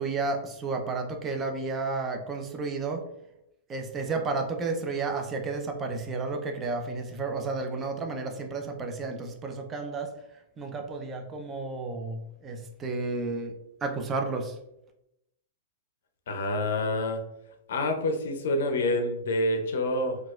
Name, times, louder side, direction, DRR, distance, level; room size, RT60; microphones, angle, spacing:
voice 1, 0.0-3.0 3.7-10.1 10.6-13.5 13.8-14.6, right 3 dB, 25° right, 3 dB, 0.5 m, -32 dB
voice 2, 16.3-17.2 17.7-20.2, left 1 dB, 70° left, 5 dB, 0.5 m, -27 dB
4.0 x 2.3 x 2.3 m, 0.86 s
hypercardioid pair, 120°, 0 cm